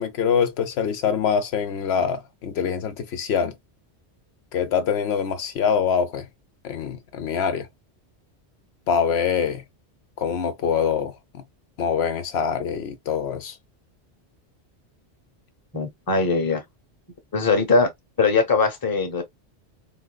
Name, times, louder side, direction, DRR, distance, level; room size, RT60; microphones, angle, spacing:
voice 1, 0.0-3.5 4.5-6.2 6.6-7.7 8.9-9.6 10.2-11.1 11.8-13.5, left 7 dB, 75° left, 0.8 m, -24 dB
voice 2, 15.7-16.6 17.3-17.9 18.2-19.2, left 4 dB, 20° left, 0.8 m, -21 dB
3.8 x 2.5 x 2.2 m
omnidirectional pair, 1.1 m